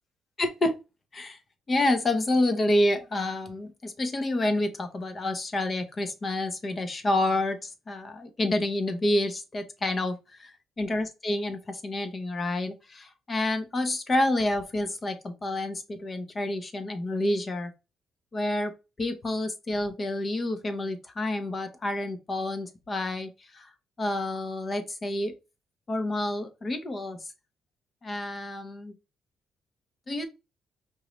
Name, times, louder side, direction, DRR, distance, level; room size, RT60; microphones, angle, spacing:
voice 1, 0.4-0.7 1.1-1.4 1.7-10.5 10.8-17.7 18.3-18.7 19.0-23.7 24.0-25.3 25.9-27.2 28.0-28.9 30.1-30.2, left 1 dB, 35° left, 0.9 m, -28 dB
5.0 x 2.7 x 3.1 m
cardioid pair, 90°, 0 cm